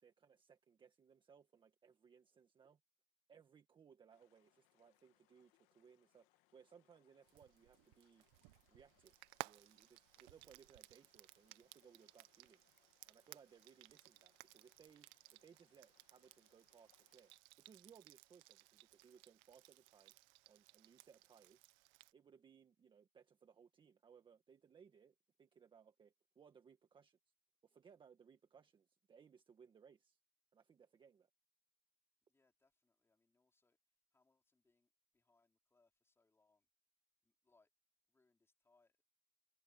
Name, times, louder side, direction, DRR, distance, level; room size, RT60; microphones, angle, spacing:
voice 1, 0.0-2.8 3.3-8.2 8.7-9.1 9.4-12.6 13.1-17.3 17.6-20.2 20.5-21.7 22.1-27.2 27.6-30.2 30.5-31.3, right 7 dB, 15° right, 1.7 m, -66 dB
sound 1, 4.1-17.4, left 21 dB, 45° left, 2.2 m, -80 dB
Frying (food), 7.3-22.1, right 23 dB, 50° right, 1.4 m, -59 dB
voice 2, 32.3-33.8 34.1-36.7 37.2-37.7 38.1-39.0, left 3 dB, 10° left, 4.8 m, -79 dB
supercardioid pair, 145°, 31 cm